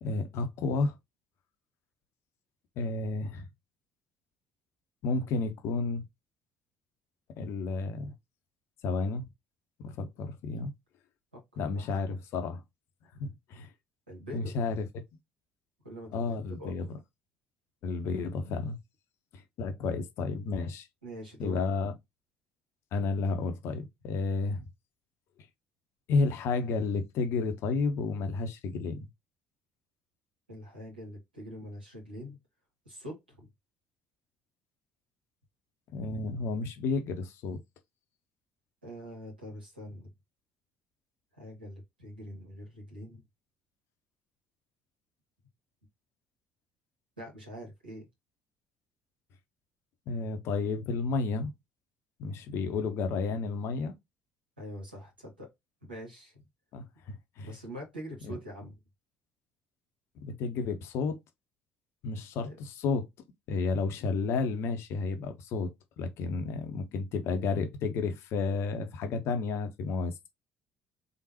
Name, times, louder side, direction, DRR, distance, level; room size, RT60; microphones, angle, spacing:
voice 1, 0.0-1.0 2.8-3.5 5.0-6.0 7.4-8.1 8.8-9.2 9.8-10.7 11.6-12.6 13.1-13.7 14.3-14.9 16.1-16.9 17.8-18.8 19.3-20.9 21.4-21.9 22.9-24.7 26.1-29.1 35.9-37.6 50.1-51.5 52.2-53.9 56.7-57.5 58.3-58.4 60.2-61.2 62.0-63.1 63.5-70.3, left 4 dB, 55° left, 1.0 m, -31 dB
voice 2, 11.3-12.2 14.1-14.7 15.8-16.7 21.0-21.6 30.5-32.4 32.9-33.5 38.8-40.1 41.3-43.2 47.2-48.1 54.6-55.5 55.8-56.4 57.4-58.7 62.4-62.6, equal, 85° right, 2.3 m, -44 dB
3.7 x 3.7 x 3.0 m
figure-of-eight pair, 50°, 5 cm